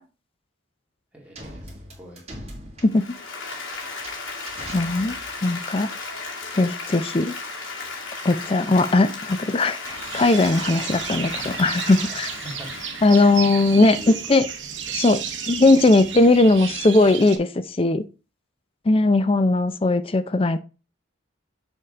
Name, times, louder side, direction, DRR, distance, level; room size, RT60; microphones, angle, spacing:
voice 1, 1.1-2.2 12.0-12.2 12.4-12.7 13.8-14.4 14.8-15.0 16.3-16.4, right 1 dB, 5° right, 2.3 m, -43 dB
sound 1, 1.3-5.4, right 1 dB, 30° right, 2.1 m, -41 dB
voice 2, 2.8-3.1 4.7-5.2 5.4-5.9 6.5-7.3 8.2-12.3 13.0-14.0 14.3-14.5 14.9-18.0 18.9-20.6, left 2 dB, 25° left, 0.4 m, -19 dB
Applause, 2.9-14.6, left 4 dB, 85° left, 2.3 m, -35 dB
sound 2, 9.8-17.4, right 7 dB, 65° right, 1.0 m, -33 dB
6.8 x 3.6 x 4.8 m
head